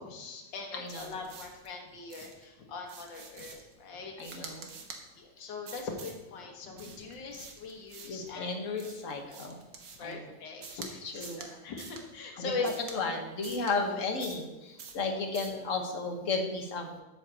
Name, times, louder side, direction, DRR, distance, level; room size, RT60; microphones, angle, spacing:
voice 1, 0.0-4.5 5.1-8.5 9.3-9.6 9.9-12.7 12.9-13.2, left 4 dB, 75° left, 1 dB, 2.0 m, -41 dB
voice 2, 0.7-1.1 4.2-4.7 8.1-9.6 10.0-10.2 11.0-11.4 12.4-17.0, left 3 dB, 45° left, 4 dB, 1.4 m, -34 dB
sound 1, 0.9-1.7 2.1-2.5 2.9-3.7 4.2-5.0 5.7-6.2 6.8-8.3 8.8-10.1 10.6-10.9 11.2-11.5 11.8-12.0 12.6-13.0 13.4-13.7 14.2-14.5 14.8-15.0 15.3-15.6, right 5 dB, 70° right, 1.7 m, -47 dB
8.7 x 4.5 x 7.4 m, 1.1 s
omnidirectional pair, 2.0 m